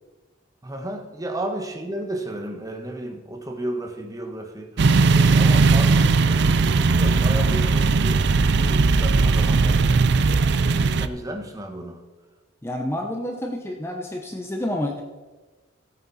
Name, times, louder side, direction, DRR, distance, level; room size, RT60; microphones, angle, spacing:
voice 1, 0.6-10.1 10.6-12.0, right 1 dB, 15° right, 4 dB, 1.3 m, -33 dB
sound 1, 4.8-11.1, right 4 dB, 60° right, 0.5 m, -18 dB
voice 2, 12.6-15.0, left 1 dB, 15° left, 2 dB, 0.8 m, -29 dB
15.5 x 8.7 x 4.2 m, 1.2 s
head